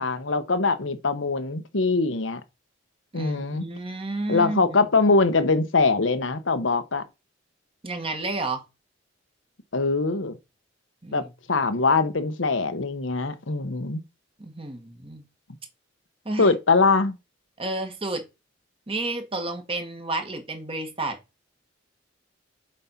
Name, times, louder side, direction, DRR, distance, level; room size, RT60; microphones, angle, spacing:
voice 1, 0.0-2.4 3.1-3.7 4.3-7.0 9.7-10.4 11.1-11.2 11.5-14.0 16.4-17.1, left 3 dB, 75° left, 1.1 m, -22 dB
voice 2, 3.1-4.8 7.8-8.6 11.0-11.3 14.4-15.2 16.2-16.5 17.6-18.2 18.9-21.2, right 2 dB, 30° right, 1.7 m, -31 dB
7.6 x 4.2 x 5.8 m
head